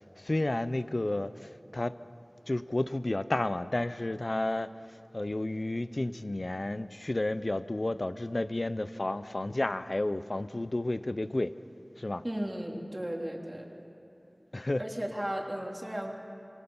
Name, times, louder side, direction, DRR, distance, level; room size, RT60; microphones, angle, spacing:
voice 1, 0.0-2.0 2.5-4.7 5.1-11.6 12.0-12.2 14.5-14.8, left 2 dB, 65° left, 0.7 m, -31 dB
voice 2, 12.2-13.7 14.8-16.1, equal, 25° right, 3.1 m, -35 dB
26.5 x 24.5 x 5.6 m
wide cardioid pair, 40°, 0 cm